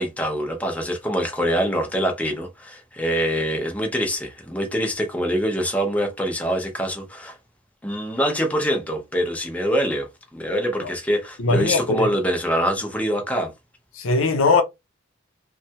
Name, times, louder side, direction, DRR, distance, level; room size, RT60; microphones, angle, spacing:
voice 1, 0.0-7.4 7.8-13.5, equal, 5° left, 0.6 m, -24 dB
voice 2, 11.4-12.1 14.0-14.6, left 3 dB, 85° left, 0.7 m, -20 dB
3.1 x 2.3 x 2.8 m
head